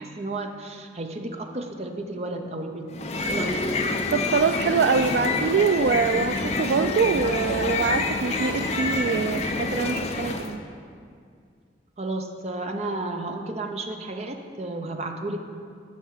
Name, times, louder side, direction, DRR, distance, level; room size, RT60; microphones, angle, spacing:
voice 1, 0.0-3.0 3.3-3.7 12.0-15.4, right 2 dB, 35° right, 4 dB, 0.7 m, -32 dB
sound 1, 2.9-10.5, left 3 dB, 40° left, 0.6 m, -27 dB
voice 2, 4.1-10.6, right 5 dB, 70° right, 8 dB, 0.3 m, -24 dB
11.5 x 4.5 x 7.4 m, 2.2 s
head